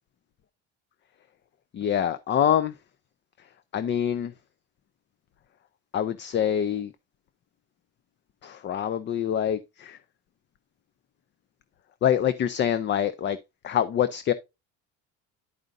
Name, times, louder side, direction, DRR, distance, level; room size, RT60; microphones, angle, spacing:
voice 1, 1.7-2.7 3.7-4.3 5.9-6.9 8.4-10.0 12.0-13.4 13.6-14.3, left 9 dB, 35° left, 0.5 m, -25 dB
11.0 x 5.0 x 2.6 m
cardioid pair, 105°, 32 cm